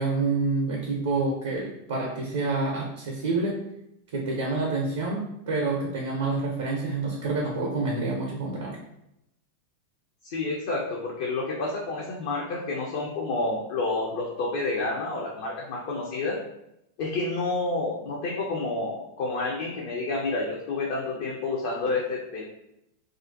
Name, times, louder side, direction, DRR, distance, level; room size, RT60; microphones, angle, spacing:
voice 1, 0.0-3.6 4.1-8.8, right 3 dB, 55° right, -2 dB, 0.4 m, -28 dB
voice 2, 10.2-16.4 17.0-22.4, left 3 dB, 50° left, -2 dB, 0.4 m, -29 dB
2.4 x 2.1 x 2.4 m, 0.83 s
figure-of-eight pair, 90°, 0 cm